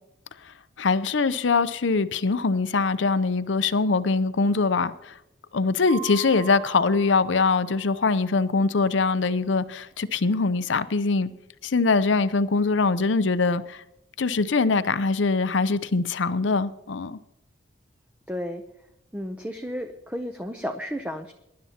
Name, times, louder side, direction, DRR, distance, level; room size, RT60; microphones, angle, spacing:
voice 1, 0.8-5.1 5.5-11.3 11.6-13.8 14.2-17.2, left 4 dB, 70° left, 0.6 m, -23 dB
Mallet percussion, 5.9-8.5, right 17 dB, 75° right, 3.0 m, -41 dB
voice 2, 18.3-18.6 19.1-21.3, equal, 5° right, 0.6 m, -32 dB
23.0 x 11.0 x 2.9 m
head